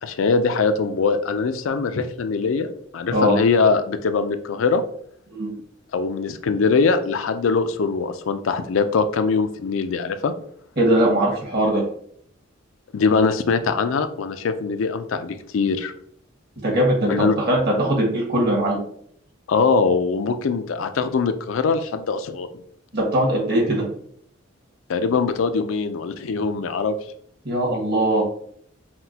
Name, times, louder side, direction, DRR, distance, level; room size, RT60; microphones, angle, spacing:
voice 1, 0.0-2.7 2.9-4.8 5.9-10.3 12.9-15.9 17.1-17.4 19.5-22.5 24.9-26.9, left 4 dB, 80° left, 9 dB, 0.4 m, -22 dB
voice 2, 10.8-11.8 16.6-18.8 22.9-23.8 27.4-28.2, right 1 dB, 55° right, -2 dB, 1.6 m, -20 dB
5.9 x 2.2 x 2.8 m, 0.65 s
head